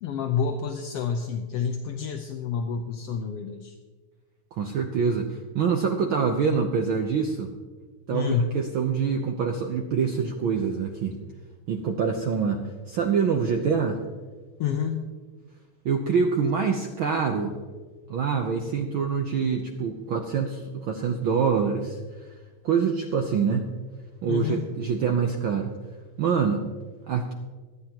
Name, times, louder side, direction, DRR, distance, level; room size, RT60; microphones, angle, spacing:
voice 1, 0.0-3.7 8.1-8.5 14.6-15.1 24.3-24.7, left 6 dB, 75° left, 5 dB, 1.4 m, -28 dB
voice 2, 4.5-7.5 8.1-11.2 11.7-12.6 12.9-14.0 15.8-17.5 18.1-22.0 22.6-23.7 24.2-25.7 26.2-26.6 27.1-27.3, right 6 dB, 85° right, 3 dB, 1.1 m, -25 dB
23.5 x 9.7 x 2.9 m, 1.4 s
omnidirectional pair, 3.4 m